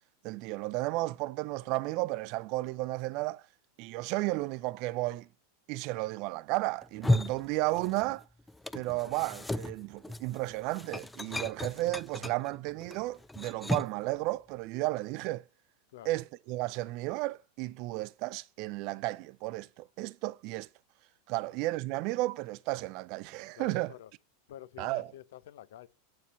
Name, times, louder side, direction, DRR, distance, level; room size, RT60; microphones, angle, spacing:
voice 1, 0.2-3.4 3.8-5.3 5.7-8.2 8.7-15.4 16.0-20.7 21.3-23.9 24.8-25.1, right 20 dB, 50° right, 0.5 m, -33 dB
sound 1, 6.8-8.2 8.5-14.0, left 1 dB, 10° left, 0.5 m, -34 dB
voice 2, 23.6-24.1 24.5-25.9, left 12 dB, 65° left, 0.8 m, -49 dB
9.6 x 5.8 x 8.5 m
figure-of-eight pair, 90°, 0 cm